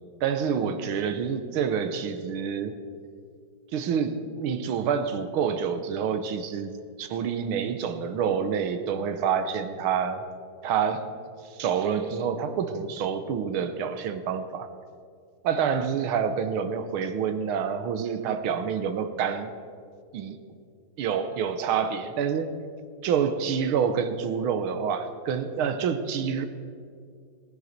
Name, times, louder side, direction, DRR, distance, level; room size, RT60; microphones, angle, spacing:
voice 1, 0.2-2.7 3.7-6.7 7.0-10.3 10.6-11.1 11.5-14.7 15.4-19.5 20.1-20.4 21.0-22.6 23.0-26.5, right 7 dB, 80° right, 10 dB, 1.8 m, -27 dB
16.5 x 9.3 x 6.6 m, 2.2 s
omnidirectional pair, 2.3 m